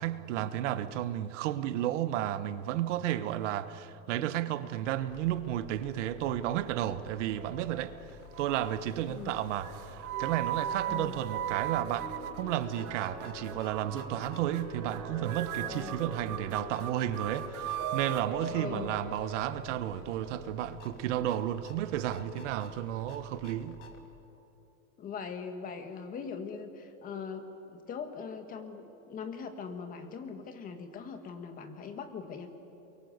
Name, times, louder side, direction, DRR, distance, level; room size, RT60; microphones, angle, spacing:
voice 1, 0.0-7.9 8.4-23.8, right 12 dB, 55° right, 1.3 m, -32 dB
sound 1, 4.8-24.1, left 6 dB, 55° left, 3.2 m, -52 dB
sound 2, 7.4-8.0 8.3-8.8 9.6-12.9 13.2-13.6 14.0-14.3 14.5-15.0 15.3-18.3, right 13 dB, 80° right, 1.6 m, -37 dB
sound 3, 9.1-20.3, right 2 dB, 35° right, 5.9 m, -43 dB
voice 2, 10.9-11.2 15.7-16.1 18.5-18.9 25.0-32.5, left 6 dB, 20° left, 1.8 m, -41 dB
28.5 x 23.0 x 8.2 m
supercardioid pair, 165°, 42 cm